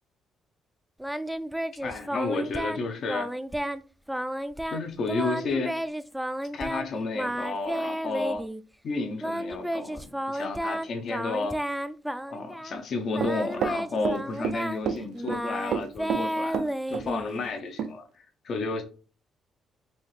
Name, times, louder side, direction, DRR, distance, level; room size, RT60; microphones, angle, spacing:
Singing, 1.0-2.8 3.1-3.8 4.1-6.9 7.1-8.6 9.2-12.8 13.1-17.5, equal, 5° right, 0.3 m, -32 dB
voice 1, 1.8-3.3 4.7-5.8 6.5-8.5 8.8-11.6 12.3-18.8, left 3 dB, 60° left, 0.7 m, -32 dB
Run, 13.2-14.6 14.9-15.4 15.7-17.1 17.4-17.5 17.8-17.9, right 7 dB, 80° right, 0.3 m, -29 dB
4.1 x 2.8 x 3.1 m
cardioid pair, 90°, 0 cm